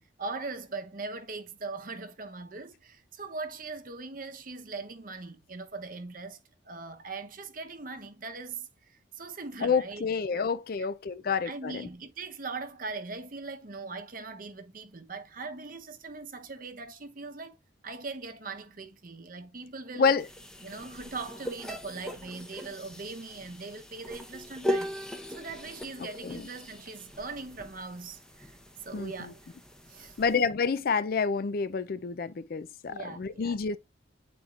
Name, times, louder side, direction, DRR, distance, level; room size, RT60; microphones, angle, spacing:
voice 1, 0.0-10.0 10.4-10.5 10.8-10.9 11.4-17.6 17.8-20.1 20.6-25.0 25.3-28.6 28.8-29.5 29.9-30.2 32.9-33.6, right 3 dB, 45° right, 0.9 m, -40 dB
voice 2, 9.6-11.7 20.0-20.3 26.2-26.4 28.9-29.1 30.2-33.8, left 5 dB, 50° left, 0.4 m, -28 dB
sound 1, 20.2-30.5, equal, 5° left, 0.7 m, -39 dB
9.4 x 4.3 x 2.4 m
head